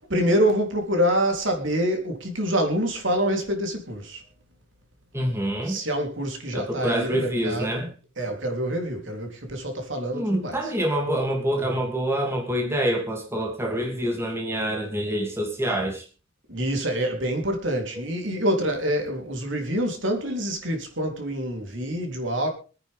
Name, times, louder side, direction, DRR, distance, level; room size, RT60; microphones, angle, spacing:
voice 1, 0.1-4.2 5.6-7.9 8.2-10.6 16.5-22.5, equal, 60° right, 3.6 m, -26 dB
voice 2, 5.1-5.8 6.5-7.9 10.1-16.0, right 1 dB, 10° right, 2.7 m, -26 dB
25.5 x 9.7 x 3.6 m
head